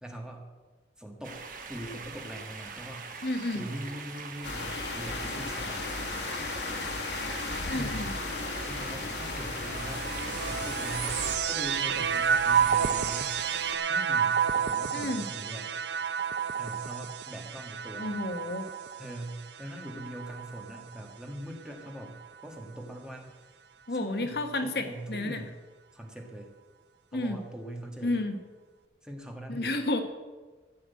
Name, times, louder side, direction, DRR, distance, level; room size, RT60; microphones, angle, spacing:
voice 1, 0.0-0.4 1.0-1.4 1.7-3.1 3.5-6.0 7.7-8.0 8.6-13.3 13.9-15.7 16.5-18.3 19.0-22.2 22.4-23.3 23.9-25.5 25.9-26.5 27.1-28.2 29.0-29.8, right 1 dB, 5° right, 1 dB, 1.6 m, -42 dB
sound 1, 1.2-13.8, right 4 dB, 50° right, 1.3 m, -42 dB
voice 2, 3.2-3.6 7.7-8.1 14.9-15.3 18.0-18.7 23.9-25.4 27.1-27.4 28.0-28.4 29.5-30.0, left 2 dB, 65° left, 7 dB, 1.2 m, -31 dB
sound 2, 4.4-11.4, left 3 dB, 90° left, 1.5 m, -35 dB
sound 3, 9.6-21.1 21.9-22.6, right 7 dB, 80° right, 0.5 m, -30 dB
14.5 x 6.3 x 8.2 m, 1.3 s
head